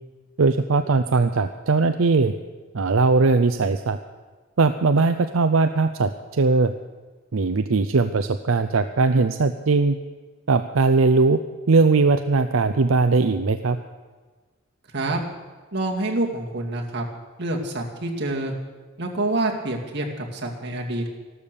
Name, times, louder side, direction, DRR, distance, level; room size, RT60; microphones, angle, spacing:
voice 1, 0.4-2.3 2.7-4.0 4.6-6.7 7.3-10.0 10.5-11.4 11.7-13.8, right 3 dB, 85° right, 9 dB, 0.6 m, -19 dB
voice 2, 15.7-17.0 17.4-18.5 19.0-21.1, right 2 dB, 60° right, 0 dB, 2.3 m, -27 dB
14.0 x 12.5 x 6.9 m, 1.3 s
head